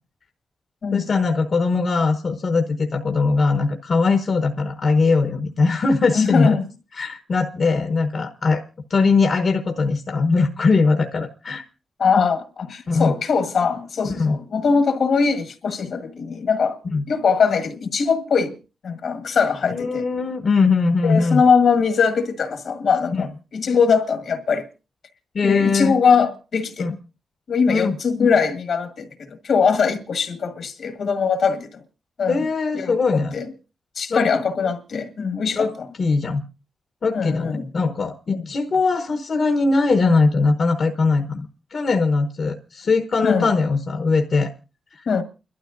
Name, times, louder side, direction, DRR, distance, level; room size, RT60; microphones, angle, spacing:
voice 1, 0.9-6.6 7.0-8.6 8.9-11.6 12.9-13.1 14.1-14.4 16.8-17.0 19.7-21.4 23.1-23.3 25.3-26.0 26.8-26.9 27.7-28.0 32.3-33.3 34.1-34.3 35.5-35.7 36.0-36.4 37.0-44.5 44.9-45.1, left 4 dB, 60° left, 1.0 m, -20 dB
voice 2, 6.1-6.6 12.0-16.8 17.1-18.6 18.8-20.0 21.0-23.3 23.5-24.7 25.4-26.9 27.5-31.8 32.2-32.5 32.7-33.5 33.9-35.9 37.1-37.7 38.3-38.4 43.2-43.5 45.0-45.2, left 5 dB, 75° left, 1.6 m, -21 dB
29.5 x 12.5 x 2.6 m
cardioid pair, 70°, 0 cm